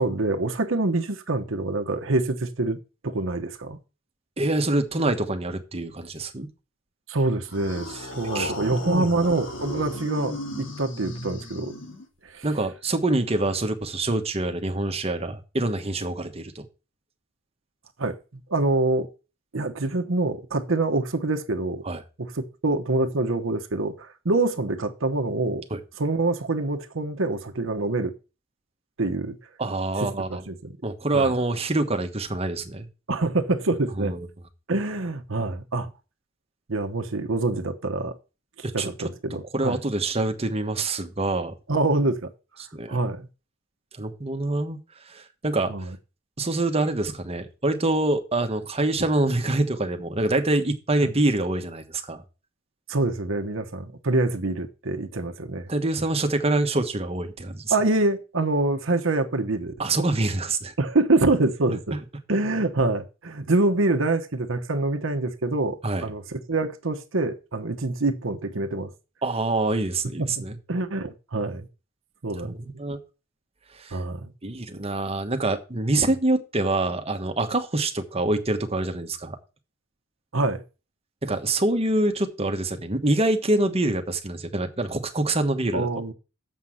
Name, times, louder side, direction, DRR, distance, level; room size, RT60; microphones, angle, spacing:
voice 1, 0.0-2.8 3.0-3.8 7.1-11.7 12.3-12.5 18.0-18.2 18.5-19.1 19.5-21.8 22.2-25.6 26.0-28.1 29.0-29.4 30.0-30.7 31.1-31.3 33.1-34.1 34.7-35.9 36.7-38.1 38.7-39.8 41.7-42.2 42.9-43.3 45.7-46.0 51.0-51.1 52.9-55.7 57.7-59.7 60.8-62.0 62.3-68.9 70.2-71.7 72.2-72.5 73.9-74.3 80.3-80.6 85.7-86.1, right 2 dB, 80° right, 1.1 m, -25 dB
voice 2, 4.4-6.5 8.3-8.5 8.8-9.3 12.4-16.6 21.8-22.0 25.7-25.8 29.6-30.4 30.8-32.9 34.0-34.3 38.6-38.9 39.5-41.5 42.7-43.0 43.9-44.8 45.1-45.7 46.4-52.2 55.7-57.7 59.8-60.7 61.9-62.0 65.8-66.1 69.2-70.6 72.4-73.0 73.7-74.0 74.4-79.4 81.2-85.9, right 2 dB, 30° right, 1.2 m, -25 dB
sound 1, 7.5-12.3, left 2 dB, 70° left, 2.2 m, -35 dB
7.4 x 5.6 x 7.6 m
head